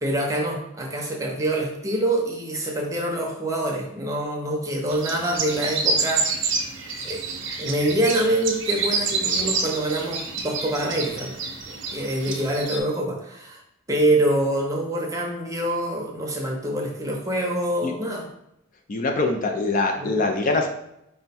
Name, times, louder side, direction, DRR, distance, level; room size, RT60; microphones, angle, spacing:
voice 1, 0.0-6.5 7.0-7.2 7.6-11.3 11.7-13.6 13.9-18.3 20.0-20.1, right 1 dB, 15° right, 0 dB, 0.6 m, -25 dB
sound 1, 4.9-12.8, right 4 dB, 65° right, 0.6 m, -28 dB
voice 2, 18.9-20.7, left 3 dB, 40° left, 3 dB, 0.4 m, -23 dB
4.5 x 2.2 x 4.1 m, 0.81 s
head